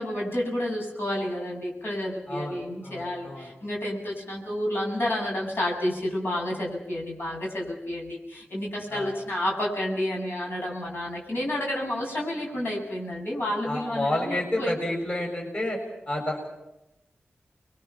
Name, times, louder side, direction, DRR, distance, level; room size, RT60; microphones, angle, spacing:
voice 1, 0.0-14.8, left 1 dB, 65° left, -3 dB, 7.5 m, -30 dB
voice 2, 2.3-3.5 8.9-9.1 13.7-15.8 16.1-16.5, left 1 dB, 35° left, 0 dB, 6.9 m, -30 dB
30.0 x 23.0 x 5.9 m, 0.92 s
wide cardioid pair, 70°, 4 cm